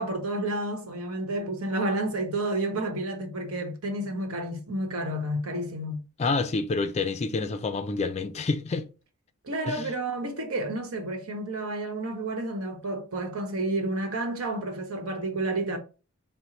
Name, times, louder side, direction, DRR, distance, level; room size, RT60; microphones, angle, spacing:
voice 1, 0.0-6.0 9.4-15.8, right 1 dB, 75° right, 1.0 m, -30 dB
voice 2, 6.2-8.9 9.7-9.9, left 3 dB, 30° left, 0.4 m, -28 dB
4.3 x 2.1 x 3.8 m
head